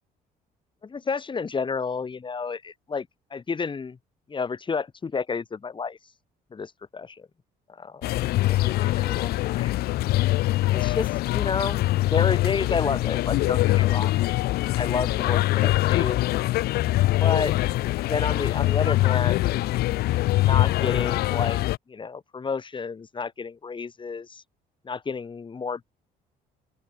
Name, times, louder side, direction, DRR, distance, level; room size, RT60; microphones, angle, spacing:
voice 1, 0.8-4.0 4.3-6.0 6.5-7.3 7.7-9.8 10.6-14.3 14.8-16.2 17.2-17.5 18.0-19.4 20.4-21.6 21.9-24.4 24.8-25.8, left 5 dB, 30° left, 4.1 m, -31 dB
sound 1, 8.0-21.8, left 17 dB, 70° left, 0.5 m, -23 dB
open air
cardioid pair, 110°, 17 cm